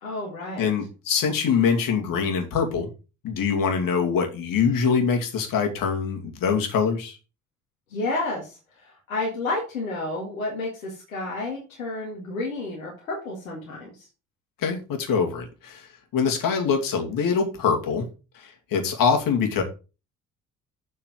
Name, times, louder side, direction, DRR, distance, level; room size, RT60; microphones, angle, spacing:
voice 1, 0.0-0.7 7.9-14.1, left 2 dB, 80° left, -2 dB, 2.0 m, -31 dB
voice 2, 0.6-2.9 3.2-7.2 14.6-15.9 16.1-18.1 18.3-19.6, left 6 dB, 55° left, 3 dB, 2.5 m, -24 dB
7.4 x 4.8 x 6.2 m, 0.32 s
figure-of-eight pair, 55°, 41 cm